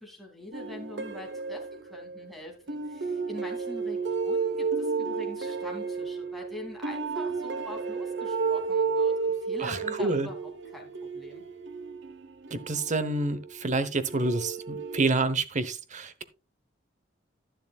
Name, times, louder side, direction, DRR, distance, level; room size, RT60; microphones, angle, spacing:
voice 1, 0.0-11.4, left 1 dB, ahead, 2.8 m, -44 dB
sound 1, 0.5-2.3 2.7-13.6 14.1-15.1, right 5 dB, 65° right, 1.0 m, -32 dB
voice 2, 9.6-10.3 12.5-16.2, right 3 dB, 40° right, 0.9 m, -28 dB
11.0 x 10.5 x 2.4 m
head